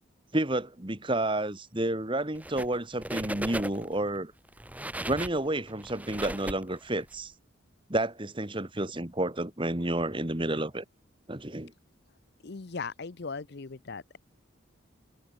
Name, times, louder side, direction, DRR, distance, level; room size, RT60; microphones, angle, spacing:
voice 1, 0.3-4.3 5.1-7.3 7.9-10.8 11.3-11.7, right 1 dB, 25° right, 1.7 m, -30 dB
sound 1, 2.3-2.8 3.0-4.0 4.5-7.2, right 1 dB, 5° right, 1.3 m, -37 dB
voice 2, 12.4-14.2, left 4 dB, 50° left, 0.7 m, -38 dB
head